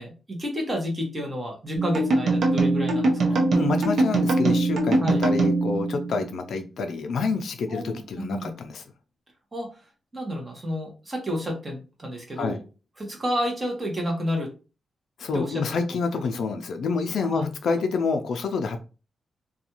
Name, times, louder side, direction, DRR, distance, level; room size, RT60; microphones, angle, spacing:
voice 1, 0.0-3.5 5.0-5.2 7.7-8.5 9.5-9.8 10.1-12.6 13.0-14.5 15.3-15.6 17.3-17.5, equal, 20° right, 1 dB, 0.9 m, -30 dB
sound 1, 1.7-6.6, right 2 dB, 65° right, 0.7 m, -22 dB
voice 2, 3.5-8.8 12.4-12.6 15.2-18.8, left 4 dB, 65° left, 6 dB, 0.4 m, -28 dB
2.5 x 2.2 x 2.8 m, 0.32 s
wide cardioid pair, 155°, 0 cm